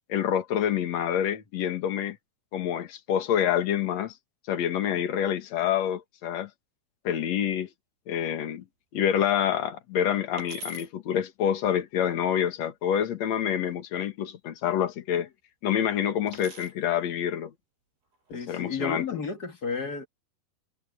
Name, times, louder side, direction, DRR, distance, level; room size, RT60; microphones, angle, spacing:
voice 1, 0.1-2.2 2.5-4.1 4.5-6.5 7.0-7.7 8.1-8.6 8.9-15.3 15.6-17.5 18.3-19.2, left 9 dB, 50° left, 2.4 m, -27 dB
sound 1, 10.4-10.9 13.1-13.7 16.3-16.8 18.1-18.6, equal, 80° right, 8.0 m, -43 dB
voice 2, 18.3-20.1, left 4 dB, 30° left, 2.0 m, -32 dB
omnidirectional pair, 4.6 m